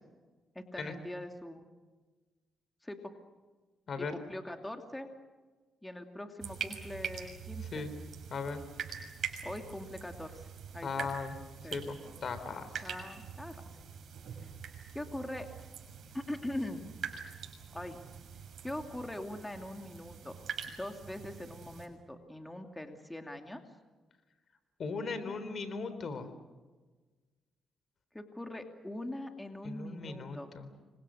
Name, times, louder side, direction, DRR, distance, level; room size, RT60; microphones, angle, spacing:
voice 1, 0.5-1.7 2.8-3.1 4.0-5.1 5.8-7.8 9.4-11.1 11.6-11.8 12.8-13.6 14.4-14.5 14.9-15.5 16.1-16.8 17.7-18.0 18.6-20.4 20.7-23.6 28.1-30.5, left 1 dB, 10° left, 5 dB, 2.6 m, -42 dB
sound 1, 6.4-21.9, right 7 dB, 65° right, 6.4 m, -44 dB
voice 2, 8.3-8.6 10.8-11.4 11.7-12.8 24.8-26.3 29.6-30.7, left 4 dB, 55° left, 11 dB, 3.9 m, -38 dB
29.5 x 25.0 x 6.5 m, 1.3 s
cardioid pair, 80°, 0 cm